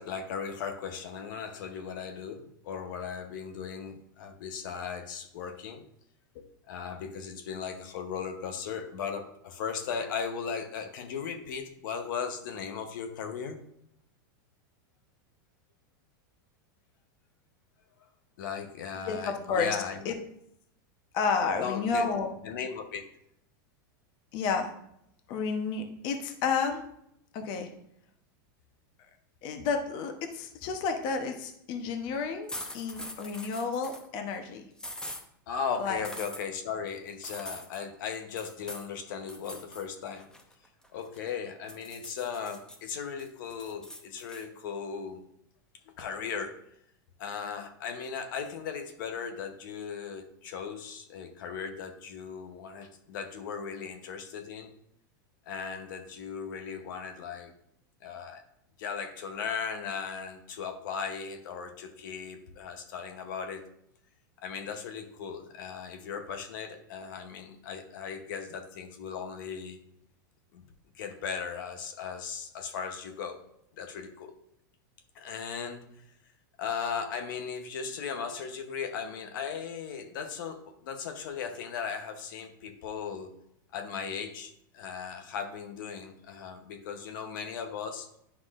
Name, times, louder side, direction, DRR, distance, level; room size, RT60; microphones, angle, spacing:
voice 1, 0.0-5.8 6.3-13.6 18.4-20.1 21.5-22.1 22.4-23.0 35.5-40.3 40.9-45.2 46.0-46.6 47.2-54.7 55.5-57.5 58.0-58.4 58.8-63.6 64.4-69.8 70.5-70.6 70.9-73.4 73.8-74.3 75.1-75.9 76.6-83.3 83.7-88.1, left 6 dB, 70° left, 6 dB, 0.9 m, -37 dB
voice 2, 19.1-19.8 20.0-20.2 21.1-22.3 24.3-24.7 25.3-26.8 27.3-27.7 29.4-34.6 35.8-36.0, left 5 dB, 45° left, 5 dB, 0.9 m, -31 dB
sound 1, 32.5-34.1 34.8-35.2 36.0-36.4 37.2-37.8 38.4-38.9 39.3-39.9 40.2-41.3 41.7-42.8 43.2-44.4, left 1 dB, 5° left, 0.7 m, -43 dB
9.7 x 5.9 x 2.5 m, 0.75 s
supercardioid pair, 145°, 11 cm